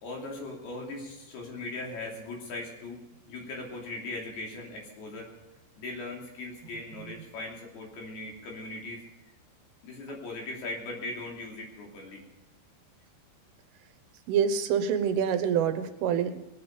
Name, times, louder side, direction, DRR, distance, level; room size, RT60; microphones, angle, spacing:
voice 1, 0.0-3.0 3.3-5.3 5.8-9.0 9.8-12.2, left 2 dB, 55° left, -1 dB, 4.8 m, -39 dB
voice 2, 14.3-16.4, right 8 dB, 80° right, 9 dB, 3.5 m, -26 dB
20.0 x 9.8 x 5.5 m, 0.97 s
omnidirectional pair, 5.6 m